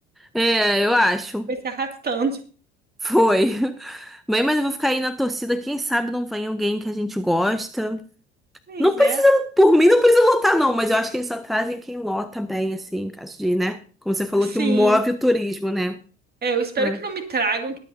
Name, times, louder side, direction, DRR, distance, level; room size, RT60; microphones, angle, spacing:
voice 1, 0.2-1.5 3.0-8.0 8.8-13.8 14.1-16.0 16.8-17.0, left 1 dB, ahead, 0.6 m, -21 dB
voice 2, 1.6-2.4 8.7-9.2 14.4-15.0 16.4-17.8, right 4 dB, 30° right, 2.4 m, -26 dB
21.5 x 8.5 x 2.7 m
figure-of-eight pair, 65°, 33 cm